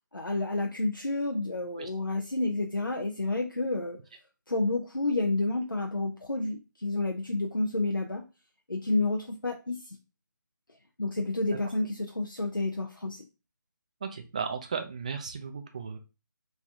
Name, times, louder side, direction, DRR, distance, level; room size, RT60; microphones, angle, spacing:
voice 1, 0.1-4.0 4.5-8.2 8.7-10.0 11.0-13.2, left 2 dB, 85° left, 1 dB, 0.6 m, -30 dB
voice 2, 14.0-16.0, right 6 dB, 20° right, 6 dB, 0.3 m, -35 dB
3.2 x 2.7 x 3.6 m, 0.29 s
figure-of-eight pair, 150°, 11 cm